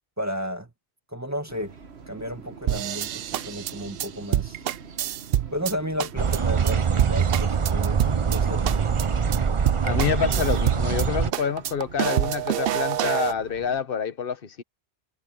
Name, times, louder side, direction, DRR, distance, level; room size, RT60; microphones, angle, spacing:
voice 1, 0.2-0.7 1.1-1.7 2.1-4.6 5.5-8.8, equal, 15° right, 2.2 m, -33 dB
sound 1, 1.5-13.8, right 5 dB, 85° right, 1.7 m, -45 dB
sound 2, 2.7-5.7 6.0-6.4 6.7-6.8 7.0-8.4 8.6-9.0 9.3-9.4 9.6-11.0 11.3-13.3, right 12 dB, 70° right, 0.8 m, -26 dB
sound 3, 6.2-11.3, right 6 dB, 35° right, 0.6 m, -23 dB
voice 2, 9.8-14.6, left 7 dB, 60° left, 1.2 m, -27 dB
omnidirectional pair, 1.1 m